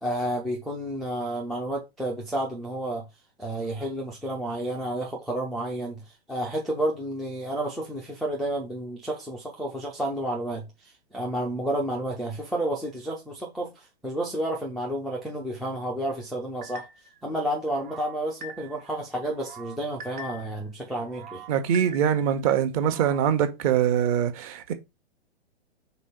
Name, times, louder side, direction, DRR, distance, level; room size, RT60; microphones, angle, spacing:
voice 1, 0.0-3.1 3.4-6.0 6.3-16.9 17.2-21.4, right 1 dB, ahead, 0.3 m, -31 dB
sound 1, 16.6-17.2 17.7-18.9 19.3-20.6 21.0-22.4 22.8-23.3, right 2 dB, 50° right, 1.5 m, -44 dB
voice 2, 21.5-24.7, right 9 dB, 35° right, 1.1 m, -23 dB
5.3 x 3.9 x 4.9 m
figure-of-eight pair, 110°, 32 cm